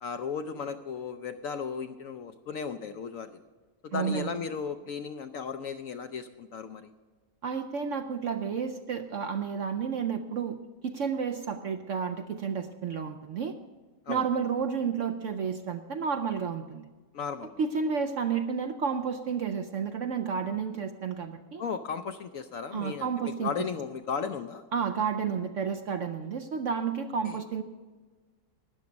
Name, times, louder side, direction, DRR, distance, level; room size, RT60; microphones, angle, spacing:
voice 1, 0.0-3.4 3.8-6.9 14.1-14.2 17.1-17.6 21.6-24.6 27.2-27.4, left 6 dB, 65° left, 8 dB, 0.8 m, -35 dB
voice 2, 3.9-4.3 7.4-10.6 10.8-13.5 14.1-16.9 17.6-21.6 22.7-23.5 24.7-27.6, right 6 dB, 65° right, 7 dB, 0.8 m, -31 dB
13.0 x 9.5 x 5.2 m, 1.4 s
omnidirectional pair, 1.8 m